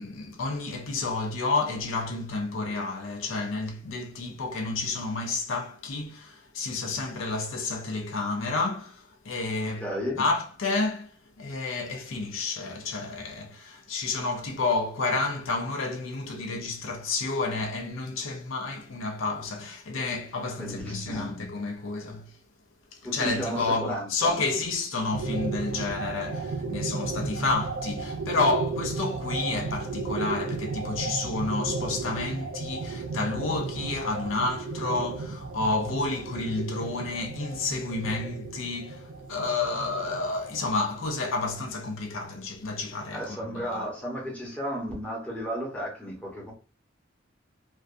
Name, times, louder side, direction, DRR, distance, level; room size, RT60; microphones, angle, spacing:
voice 1, 0.0-9.9 10.2-22.4 22.9-43.9, left 3 dB, 85° left, 0.5 m, -30 dB
voice 2, 9.8-10.2 20.6-21.3 23.0-24.4 43.1-46.5, equal, 5° left, 0.8 m, -33 dB
sound 1, 25.1-41.2, right 3 dB, 80° right, 0.4 m, -34 dB
2.4 x 2.2 x 2.5 m
head